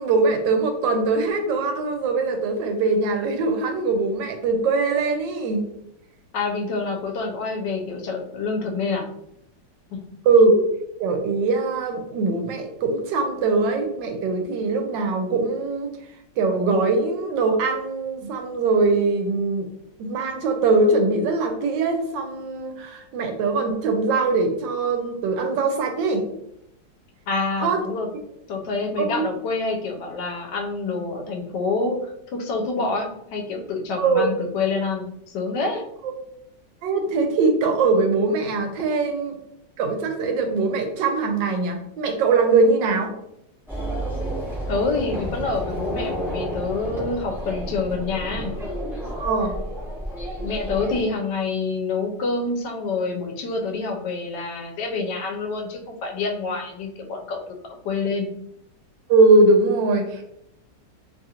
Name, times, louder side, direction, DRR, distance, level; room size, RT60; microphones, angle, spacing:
voice 1, 0.0-5.7 10.2-10.6 11.0-15.9 16.4-19.7 20.0-26.2 27.6-27.8 29.0-29.2 34.0-34.3 36.0-36.1 36.8-39.3 39.8-43.1 49.2-49.6 59.1-60.3, right 3 dB, 85° right, 4 dB, 1.3 m, -21 dB
voice 2, 6.3-9.1 9.9-10.0 27.3-28.1 28.5-35.8 44.7-48.5 50.4-57.6 57.8-58.3, left 3 dB, 75° left, 2 dB, 1.2 m, -27 dB
sound 1, 43.7-51.0, equal, ahead, 0.6 m, -30 dB
3.2 x 2.4 x 2.7 m, 0.77 s
omnidirectional pair, 1.9 m